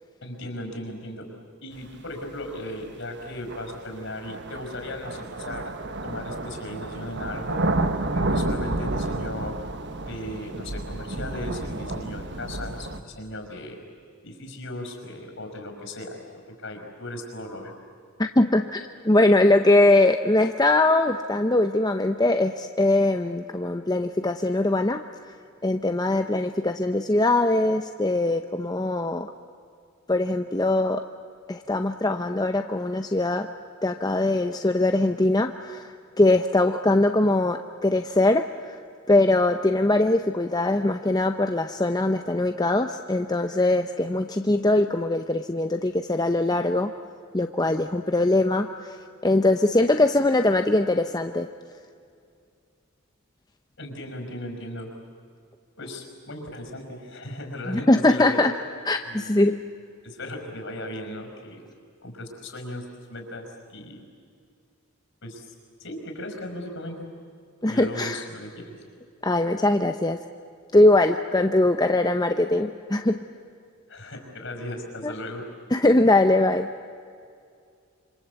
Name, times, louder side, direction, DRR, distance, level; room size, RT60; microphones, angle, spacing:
voice 1, 0.2-1.3 1.6-5.7 6.0-7.6 8.1-9.5 10.0-13.8 14.2-17.7 53.8-54.9 55.8-58.4 59.0-59.3 60.0-61.6 62.0-64.0 65.2-65.5 65.8-67.1 67.7-68.8 73.9-75.4, left 1 dB, 55° left, 4 dB, 5.4 m, -37 dB
sound 1, 2.4-2.5 3.5-13.0, right 2 dB, 50° right, 1.3 m, -30 dB
voice 2, 18.2-25.0 25.6-29.3 30.1-31.0 31.5-33.5 33.8-38.8 39.1-46.9 47.3-49.0 49.2-51.5 57.7-58.5 58.9-59.6 67.6-68.2 69.2-70.2 70.7-73.2 75.0-75.1 75.7-76.7, left 2 dB, 15° left, 7 dB, 0.6 m, -21 dB
27.0 x 25.5 x 8.2 m, 2.4 s
head